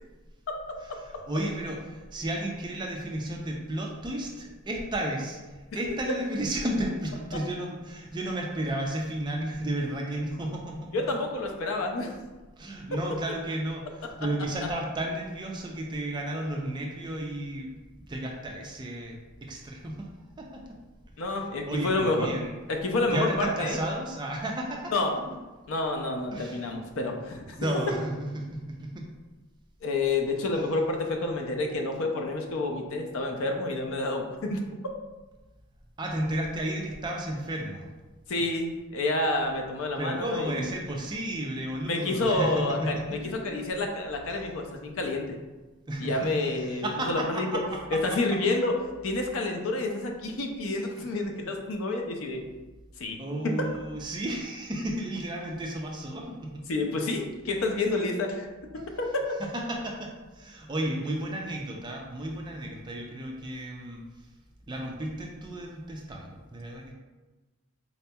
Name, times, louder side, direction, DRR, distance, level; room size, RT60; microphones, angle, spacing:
voice 1, 1.0-10.9 12.6-17.7 18.1-20.1 20.4-20.6 21.4-22.6 23.1-24.9 26.3-26.7 27.6-29.1 36.0-37.9 40.0-43.1 44.3-44.4 45.9-48.0 53.2-56.6 59.4-64.0 64.7-66.9, right 1 dB, 20° right, 0 dB, 0.3 m, -33 dB
voice 2, 10.9-12.1 21.2-22.3 22.7-23.8 24.9-25.2 25.7-27.6 29.8-34.6 38.3-40.7 41.9-45.4 46.0-47.6 47.9-48.8 49.0-52.4 53.0-53.2 53.4-53.6 56.7-58.5 58.7-59.1, left 2 dB, 70° left, 3 dB, 0.4 m, -29 dB
4.1 x 2.8 x 2.2 m, 1.2 s
head